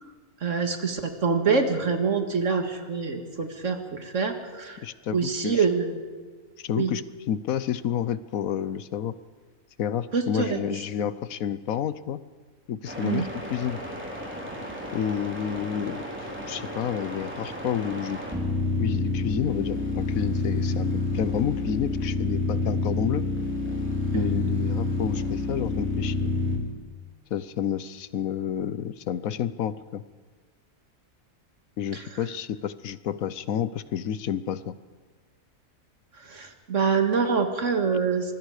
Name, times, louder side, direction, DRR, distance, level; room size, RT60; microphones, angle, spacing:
voice 1, 0.4-4.8 5.1-6.1 6.8-6.9 10.1-10.6 11.0-11.1 13.0-13.2 24.1-24.3 31.9-32.0 36.2-38.3, right 5 dB, 60° right, 5 dB, 2.1 m, -26 dB
voice 2, 4.8-5.6 6.6-9.1 9.8-12.2 12.7-13.8 14.9-18.2 18.8-23.3 24.1-26.3 27.3-30.0 31.8-34.7, left 9 dB, 75° left, 15 dB, 1.2 m, -30 dB
sound 1, 12.8-26.6, left 2 dB, 10° right, 3.8 m, -29 dB
25.0 x 20.5 x 5.0 m, 1.5 s
omnidirectional pair, 1.5 m